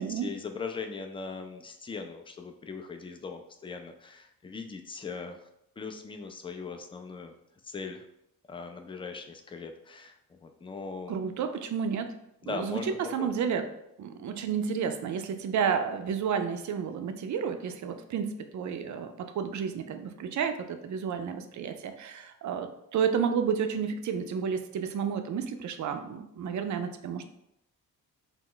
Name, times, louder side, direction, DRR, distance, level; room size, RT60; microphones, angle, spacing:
voice 1, 0.0-5.4 5.8-7.3 7.6-8.0 8.5-11.4 12.4-13.3, left 4 dB, 15° left, 5 dB, 0.3 m, -40 dB
voice 2, 11.1-12.1 12.5-13.7 14.0-27.3, right 7 dB, 50° right, 8 dB, 0.4 m, -31 dB
2.1 x 2.0 x 3.7 m, 0.80 s
supercardioid pair, 50°, 38 cm